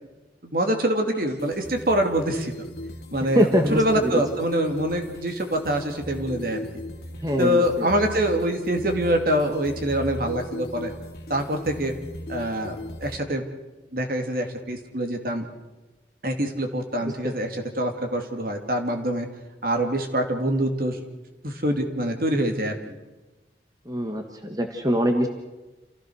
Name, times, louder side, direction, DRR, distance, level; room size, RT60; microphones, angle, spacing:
voice 1, 0.4-2.5 3.1-6.6 7.4-10.9 11.3-11.9 12.3-13.4 13.9-15.4 16.2-19.3 19.6-21.0 21.4-23.0, right 1 dB, 55° right, 4 dB, 2.6 m, -25 dB
sound 1, 1.1-13.2, left 1 dB, 60° left, 2.1 m, -38 dB
voice 2, 3.3-4.1 7.2-7.9 17.0-17.3 23.8-25.3, equal, 20° right, 4 dB, 1.6 m, -23 dB
28.0 x 16.0 x 6.4 m, 1.1 s
head